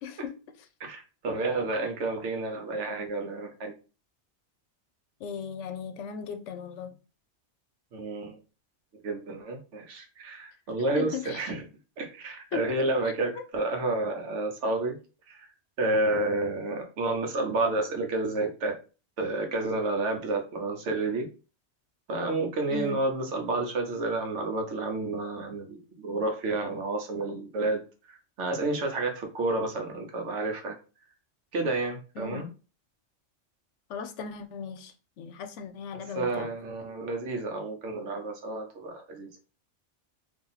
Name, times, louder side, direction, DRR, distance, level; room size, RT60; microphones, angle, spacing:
voice 1, 0.0-0.4 5.2-7.0 10.9-11.5 12.5-12.8 13.0-13.4 22.7-23.1 32.2-32.5 33.9-36.5, left 6 dB, 85° left, 0.9 m, -37 dB
voice 2, 0.8-3.7 7.9-8.4 9.0-11.6 12.0-15.0 15.3-15.5 15.8-18.8 19.2-21.3 22.1-27.8 28.1-30.8 31.5-32.5 36.1-39.3, right 2 dB, 80° right, 1.2 m, -30 dB
2.9 x 2.7 x 4.0 m
omnidirectional pair, 1.2 m